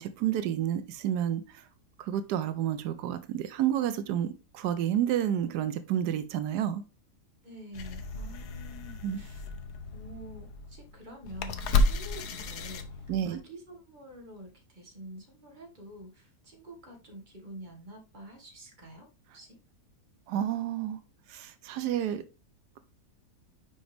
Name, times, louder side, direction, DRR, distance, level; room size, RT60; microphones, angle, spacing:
voice 1, 0.0-1.7 2.0-4.3 4.5-6.8 9.0-9.2 13.1-13.4 20.3-21.0 21.3-22.2, right 10 dB, 85° right, 11 dB, 1.2 m, -30 dB
voice 2, 7.4-9.5 9.9-19.6, right 1 dB, 30° right, 2 dB, 1.7 m, -48 dB
sound 1, 7.7-13.4, left 2 dB, 80° left, 1.3 m, -32 dB
6.0 x 5.0 x 3.3 m, 0.30 s
omnidirectional pair, 1.7 m